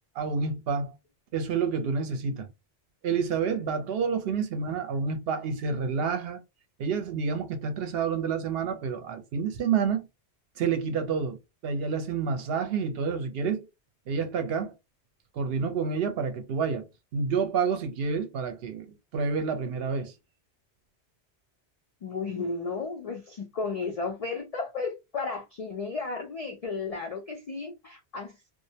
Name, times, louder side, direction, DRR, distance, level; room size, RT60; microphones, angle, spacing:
voice 1, 0.2-0.9 1.3-2.5 3.0-6.4 6.8-10.1 10.6-13.7 14.1-14.7 15.3-16.9 17.1-20.1, right 5 dB, 65° right, 0.8 m, -29 dB
voice 2, 22.0-28.4, left 4 dB, 65° left, 0.3 m, -33 dB
2.4 x 2.0 x 2.7 m
omnidirectional pair, 1.1 m